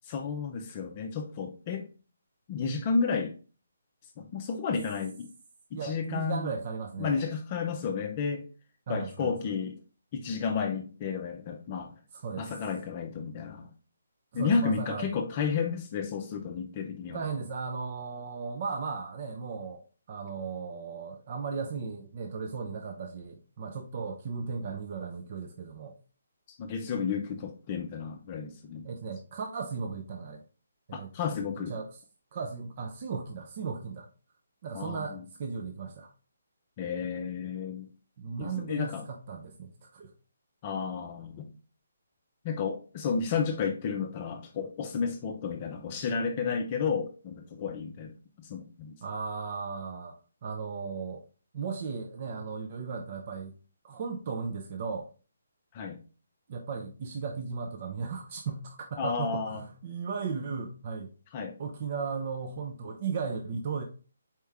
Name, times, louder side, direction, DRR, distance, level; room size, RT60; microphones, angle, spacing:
voice 1, 0.0-1.9 2.5-3.3 4.2-5.3 5.7-6.5 7.0-8.5 8.9-9.8 10.1-11.9 12.4-13.7 14.3-17.3 26.5-28.8 30.9-31.7 34.7-35.2 36.8-37.9 38.4-39.0 40.6-41.4 42.4-48.1 48.4-48.9 55.7-56.0 59.0-59.6 61.3-61.5, left 5 dB, 30° left, 0.5 m, -32 dB
voice 2, 5.7-7.2 8.9-9.3 12.1-12.5 14.3-15.1 17.1-26.0 28.8-30.4 30.9-31.1 31.7-31.9 32.3-34.1 34.6-36.1 38.2-40.1 49.0-50.2 50.4-51.2 51.5-53.5 53.8-55.1 56.5-61.1 61.6-63.8, right 5 dB, 40° right, 0.5 m, -36 dB
4.4 x 3.5 x 3.4 m
hypercardioid pair, 160°, 0 cm